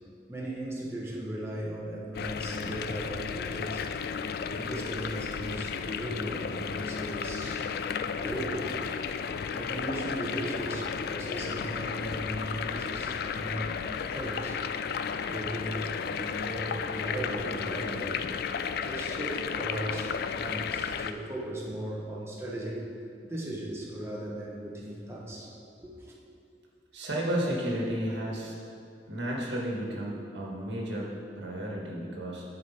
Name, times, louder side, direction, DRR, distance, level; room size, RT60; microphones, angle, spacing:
voice 1, 0.3-3.9 4.4-7.7 8.2-8.7 9.5-14.6 15.2-18.2 18.8-22.9 23.2-25.5 25.8-26.1, right 1 dB, 15° right, -4 dB, 1.0 m, -37 dB
sound 1, 2.1-21.1, left 6 dB, 60° left, 0.3 m, -33 dB
voice 2, 26.9-28.5 29.1-32.4, right 1 dB, 85° right, -3 dB, 1.6 m, -32 dB
10.0 x 5.0 x 4.2 m, 2.4 s
head